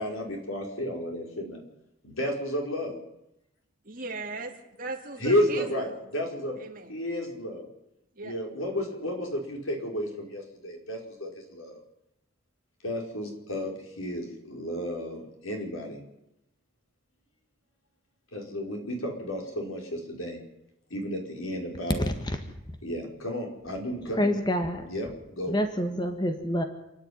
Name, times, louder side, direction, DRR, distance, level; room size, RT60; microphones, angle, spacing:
voice 1, 0.0-1.6 2.0-3.0 5.2-6.6 6.9-7.7 8.2-11.8 12.8-16.0 18.3-20.4 20.9-22.0 22.8-24.3 24.9-25.5, equal, 85° left, 2 dB, 4.9 m, -32 dB
voice 2, 3.8-6.1 6.6-7.3 8.1-8.3, right 3 dB, 40° right, 2 dB, 2.7 m, -39 dB
voice 3, 21.9-22.4 24.0-24.9 25.5-26.6, equal, 20° left, 6 dB, 1.6 m, -27 dB
28.0 x 10.5 x 9.6 m, 0.86 s
head